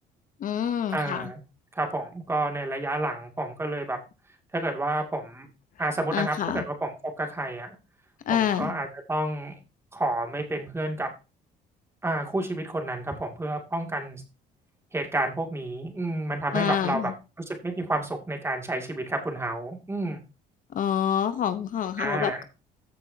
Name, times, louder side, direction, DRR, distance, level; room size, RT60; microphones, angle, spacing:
voice 1, 0.4-1.3 6.1-6.6 8.3-8.7 16.5-17.1 20.7-22.4, left 9 dB, 50° left, 11 dB, 0.8 m, -27 dB
voice 2, 0.9-1.4 1.8-4.0 4.5-5.5 5.8-6.9 7.2-7.8 8.3-9.6 9.9-11.1 12.0-14.2 14.9-17.1 17.4-20.2 22.0-22.4, right 2 dB, 15° right, 3 dB, 2.3 m, -30 dB
14.5 x 6.6 x 2.8 m, 0.30 s
cardioid pair, 110°, 17 cm